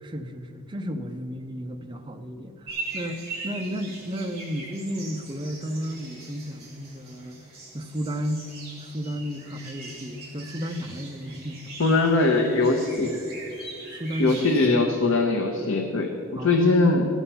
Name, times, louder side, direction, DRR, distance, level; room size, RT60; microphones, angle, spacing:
voice 1, 0.0-7.4 7.7-8.5 8.8-11.7 14.0-14.7 16.4-17.1, equal, 20° right, 5 dB, 0.5 m, -33 dB
sound 1, 2.7-14.7, right 3 dB, 50° right, 3.0 m, -41 dB
voice 2, 11.8-13.2 14.2-17.1, left 3 dB, 70° left, 1 dB, 0.8 m, -21 dB
14.0 x 7.2 x 5.5 m, 2.8 s
head